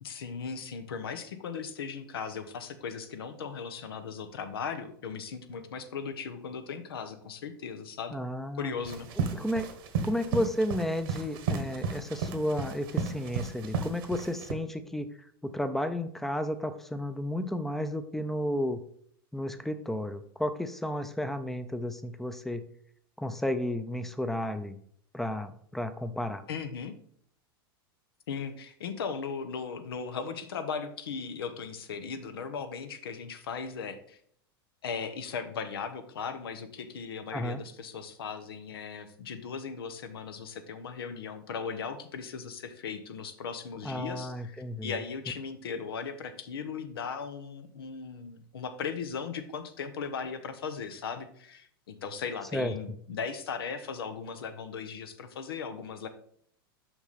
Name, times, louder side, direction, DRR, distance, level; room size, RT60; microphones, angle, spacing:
voice 1, 0.0-8.2 8.6-9.1 26.5-26.9 28.3-34.2 34.8-56.1, left 6 dB, 80° left, 10 dB, 0.8 m, -37 dB
voice 2, 8.1-8.7 9.2-9.7 10.0-15.1 15.4-18.8 19.3-22.6 23.2-24.8 25.1-26.4 37.3-37.6 43.8-44.9 52.5-52.7, left 1 dB, ahead, 10 dB, 0.5 m, -32 dB
sound 1, 8.8-14.5, right 5 dB, 70° right, 1.2 m, -34 dB
5.9 x 5.4 x 4.0 m, 0.63 s
hypercardioid pair, 105°, 12 cm